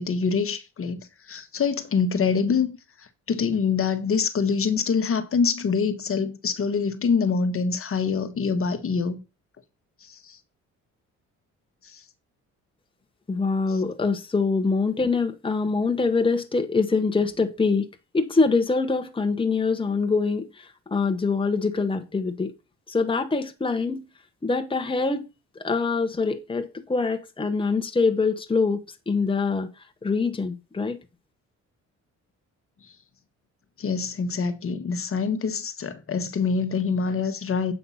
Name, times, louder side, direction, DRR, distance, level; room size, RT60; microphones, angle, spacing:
voice 1, 0.0-2.7 3.0-9.2 10.0-10.4 11.8-12.0 13.7-13.8 33.8-37.7, left 5 dB, 45° left, 1.4 m, -25 dB
voice 2, 13.3-17.9 18.1-22.5 22.9-24.1 24.4-25.2 25.5-29.7 30.0-31.0, left 4 dB, 15° left, 1.2 m, -24 dB
8.4 x 5.8 x 5.6 m
cardioid pair, 90°, 30 cm